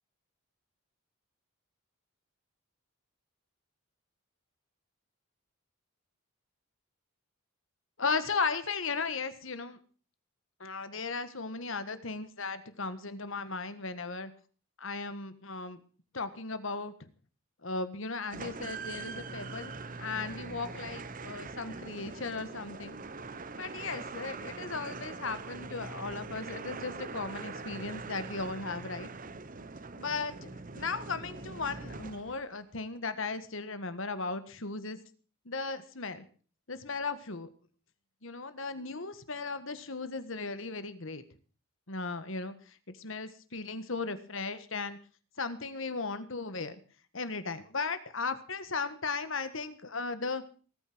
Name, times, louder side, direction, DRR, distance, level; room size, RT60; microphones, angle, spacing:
voice 1, 8.0-9.8 10.6-14.3 14.8-15.8 16.1-17.1 17.6-19.7 20.0-23.0 23.5-29.1 30.0-35.0 35.4-36.3 36.7-37.5 38.2-41.2 41.9-45.0 45.4-46.7 47.1-50.4, left 4 dB, 60° left, 12 dB, 1.6 m, -36 dB
sound 1, 18.3-32.6, right 3 dB, 40° right, 0.9 m, -42 dB
19.5 x 9.4 x 6.1 m, 0.40 s
head